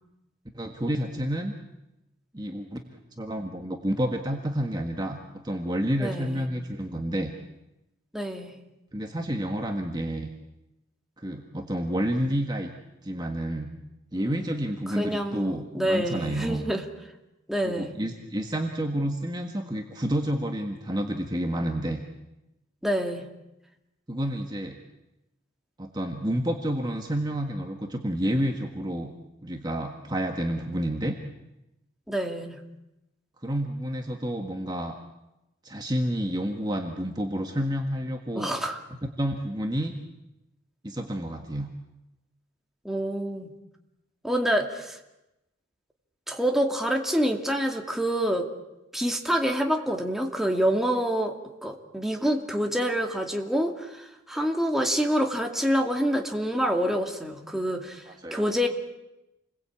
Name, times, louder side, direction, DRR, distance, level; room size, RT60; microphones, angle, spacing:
voice 1, 0.5-1.5 2.3-5.2 5.4-7.3 8.9-10.3 11.2-12.7 13.0-13.7 14.1-16.7 17.6-22.0 24.1-24.8 25.8-29.1 29.4-31.2 33.4-35.0 35.6-38.5 39.2-39.9 40.8-41.7 54.3-54.5 58.1-58.5, equal, 20° right, 3 dB, 1.6 m, -29 dB
voice 2, 6.0-6.5 8.1-8.5 14.9-16.8 17.5-17.9 22.8-23.3 32.1-32.6 38.3-38.8 42.8-43.5 44.2-45.0 46.3-48.5 48.9-51.3 51.6-58.0 58.3-58.7, equal, ahead, 2 dB, 2.4 m, -27 dB
29.0 x 22.0 x 8.7 m, 0.94 s
head